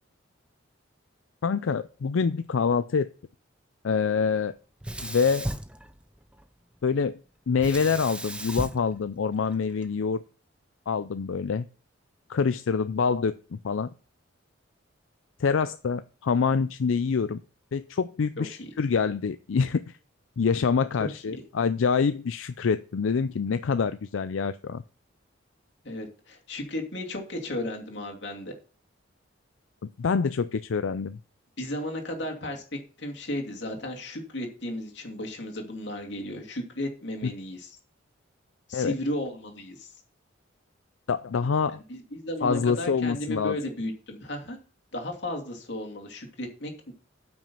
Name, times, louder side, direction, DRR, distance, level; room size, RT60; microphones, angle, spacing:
voice 1, 1.4-3.1 3.8-4.5 5.0-5.5 6.8-7.2 7.5-10.2 10.9-11.7 12.3-13.9 15.4-17.4 17.7-19.8 20.4-24.8 30.0-31.2 38.7-38.9 41.1-41.8 42.4-43.6, left 5 dB, 85° left, 13 dB, 0.4 m, -26 dB
Sink (filling or washing), 4.8-6.5 7.6-9.9, right 1 dB, 5° right, 0.6 m, -36 dB
voice 2, 18.4-18.7 21.0-21.1 25.8-28.5 31.6-37.7 38.7-39.9 41.9-44.6 44.9-46.9, left 1 dB, 60° left, 1 dB, 2.6 m, -34 dB
9.0 x 6.1 x 5.4 m, 0.38 s
head